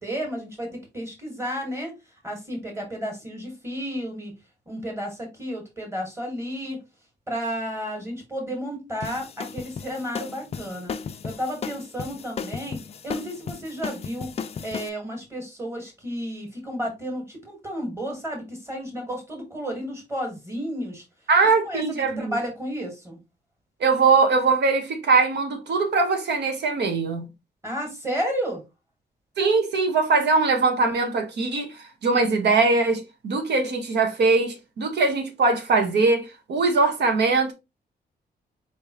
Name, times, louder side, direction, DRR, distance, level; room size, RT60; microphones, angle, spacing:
voice 1, 0.0-1.9 2.2-4.3 4.6-6.8 7.3-10.9 11.2-14.3 14.6-21.0 21.6-23.2 27.6-28.6, equal, 15° right, 1.6 m, -32 dB
sound 1, 9.0-14.9, left 6 dB, 35° left, 0.4 m, -35 dB
voice 2, 21.3-22.4 23.8-27.3 29.4-37.5, right 4 dB, 75° right, 1.1 m, -21 dB
4.4 x 3.4 x 3.0 m
wide cardioid pair, 165°, 18 cm